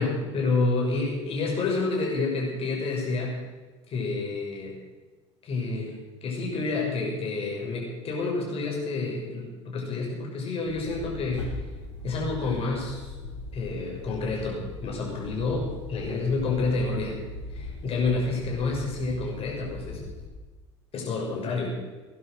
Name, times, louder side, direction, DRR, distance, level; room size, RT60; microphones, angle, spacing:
voice 1, 0.0-3.4 3.9-4.8 5.4-11.4 12.0-13.1 13.5-17.2 17.5-20.0 20.9-21.7, left 3 dB, 40° left, -2 dB, 6.2 m, -29 dB
sound 1, 10.7-20.3, left 3 dB, 80° left, 3.1 m, -40 dB
17.5 x 11.0 x 6.5 m, 1.3 s
figure-of-eight pair, 70°, 15 cm